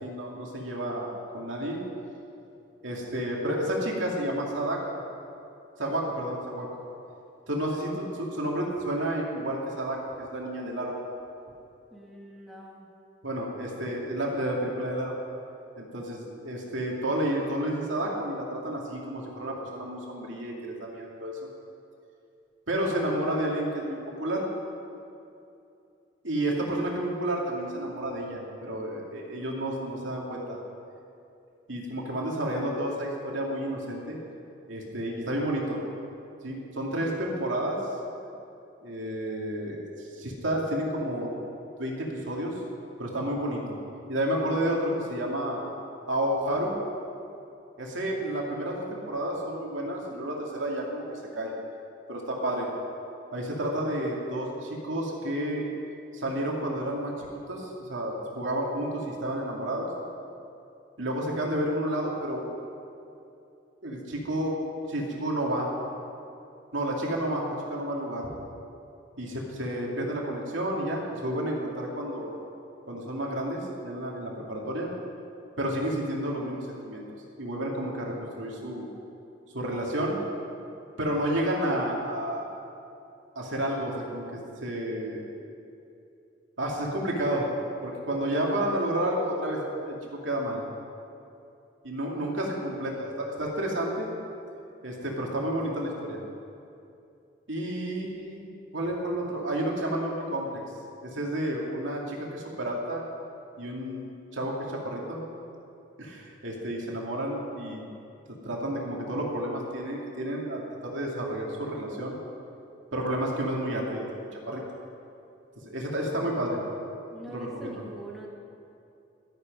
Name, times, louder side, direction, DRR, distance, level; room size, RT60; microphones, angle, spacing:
voice 1, 0.0-1.8 2.8-4.8 5.8-6.7 7.5-10.9 13.2-15.1 15.8-21.4 22.7-24.5 26.2-30.6 31.7-34.2 34.7-35.8 36.4-37.8 38.8-41.3 41.8-42.6 43.0-43.8 44.1-45.6 46.1-46.8 47.8-51.5 52.1-52.7 53.3-55.7 56.1-59.9 61.0-62.5 63.8-64.6 64.9-65.7 66.7-68.3 69.2-72.4 72.9-74.9 75.6-77.1 77.4-78.9 79.5-80.2 81.0-82.5 83.4-85.3 86.6-87.5 87.8-90.6 91.8-94.1 94.8-96.2 97.5-98.5 98.7-100.6 101.0-103.0 103.6-105.2 106.0-107.9 108.4-112.2 112.9-114.6 115.6-116.6 117.3-117.8, right 1 dB, 85° right, -2 dB, 2.6 m, -31 dB
voice 2, 11.9-12.9 26.7-26.9 97.7-97.9 117.1-118.3, right 1 dB, ahead, -4 dB, 1.7 m, -44 dB
14.0 x 12.5 x 5.5 m, 2.7 s
head